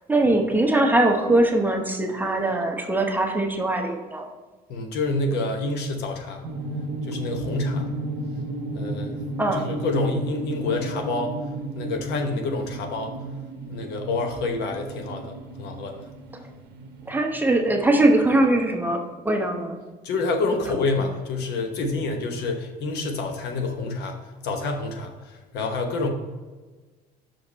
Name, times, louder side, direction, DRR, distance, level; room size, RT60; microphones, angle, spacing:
voice 1, 0.0-4.3 9.4-9.7 17.1-19.8, right 2 dB, 10° right, 2 dB, 0.9 m, -21 dB
voice 2, 4.7-6.4 7.1-7.9 8.7-9.3 9.5-11.4 11.7-13.1 13.7-16.1 20.0-24.2 24.4-26.1, left 3 dB, 80° left, 4 dB, 1.0 m, -28 dB
sound 1, 6.4-18.5, right 2 dB, 75° right, 0.7 m, -34 dB
6.0 x 5.1 x 4.2 m, 1.3 s
cardioid pair, 110°, 17 cm